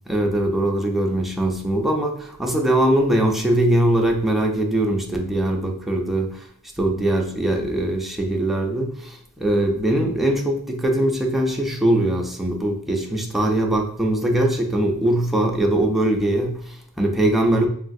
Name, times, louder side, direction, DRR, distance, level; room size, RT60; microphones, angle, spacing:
voice 1, 0.1-6.5 6.8-17.7, right 1 dB, ahead, 1 dB, 0.5 m, -21 dB
3.2 x 2.4 x 2.6 m, 0.62 s
wide cardioid pair, 50°, 36 cm